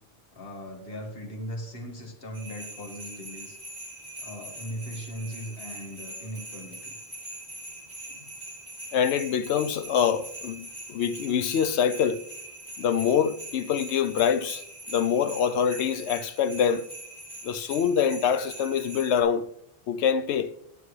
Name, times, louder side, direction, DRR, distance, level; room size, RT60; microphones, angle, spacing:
voice 1, 0.3-3.6 4.2-7.0, equal, 60° left, 1.9 m, -38 dB
sound 1, 2.3-19.2, right 1 dB, 10° left, 4.1 m, -42 dB
voice 2, 8.9-12.2 12.8-14.6 14.9-16.9 17.4-19.5 19.9-20.5, left 8 dB, 85° left, 0.9 m, -25 dB
19.5 x 7.1 x 3.2 m
omnidirectional pair, 1.1 m